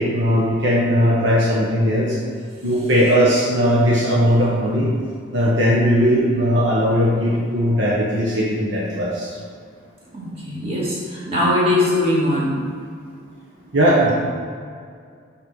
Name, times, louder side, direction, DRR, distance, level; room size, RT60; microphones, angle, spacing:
voice 1, 0.0-2.2 2.6-4.9 5.3-9.4 13.7-14.1, equal, 60° right, -6 dB, 1.2 m, -18 dB
voice 2, 10.1-12.6, left 1 dB, 30° right, -7 dB, 2.1 m, -21 dB
5.4 x 5.4 x 6.3 m, 2.1 s
head